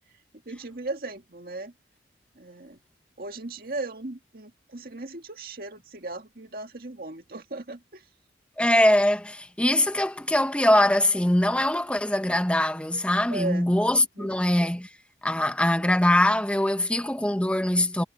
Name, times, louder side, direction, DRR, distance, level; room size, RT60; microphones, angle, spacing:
voice 1, 0.5-1.7 2.4-2.8 3.2-8.0 13.3-13.7 14.2-14.3, right 2 dB, 55° right, 2.0 m, -37 dB
voice 2, 8.6-14.9 15.2-18.0, left 1 dB, 5° left, 1.0 m, -22 dB
head